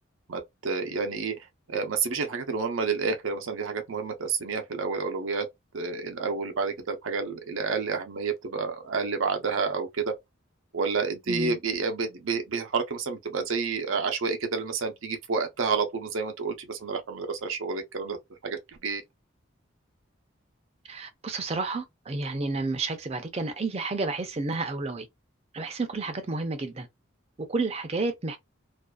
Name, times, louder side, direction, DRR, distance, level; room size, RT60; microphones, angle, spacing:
voice 1, 0.3-5.5 5.7-10.1 10.7-18.2 18.4-19.0, right 4 dB, 80° right, 0.6 m, -29 dB
voice 2, 20.9-25.1 25.5-26.9 27.4-28.4, right 3 dB, 30° right, 0.4 m, -31 dB
2.5 x 2.3 x 2.2 m
head